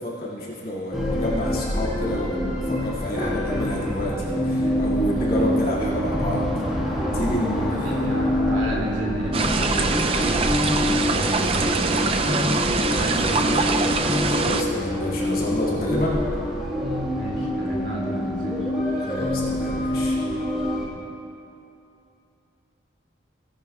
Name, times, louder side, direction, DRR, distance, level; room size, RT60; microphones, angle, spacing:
voice 1, 0.0-6.5 7.1-8.0 14.3-16.2 19.0-20.2, equal, 50° left, -7 dB, 2.2 m, -29 dB
sound 1, 0.9-20.9, left 1 dB, ahead, 1.6 m, -26 dB
voice 2, 7.5-13.9 17.1-18.6 20.9-21.1, right 1 dB, 80° right, -3 dB, 2.6 m, -33 dB
sound 2, 9.3-14.6, right 3 dB, 30° right, 0.4 m, -23 dB
17.5 x 10.5 x 2.4 m, 2.8 s
head